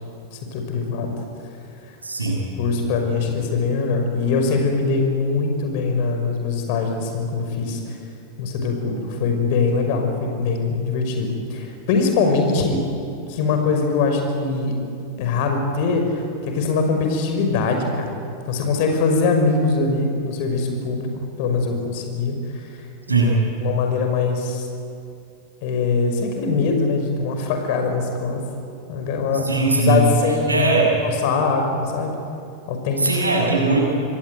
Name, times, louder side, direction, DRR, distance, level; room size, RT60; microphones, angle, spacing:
voice 1, 0.3-1.1 2.6-8.0 8.4-12.8 13.3-14.8 15.2-18.2 18.5-21.1 21.4-22.7 23.1-23.2 23.6-24.6 25.6-28.4 28.9-29.5 29.7-30.7 31.0-32.2 32.7-33.1, left 4 dB, 50° left, 4 dB, 5.8 m, -22 dB
voice 2, 2.0-2.5 23.1-23.4 29.3-30.9 33.0-33.8, right 2 dB, 80° right, -1 dB, 7.8 m, -20 dB
27.0 x 21.0 x 9.3 m, 2.5 s
figure-of-eight pair, 90°, 0 cm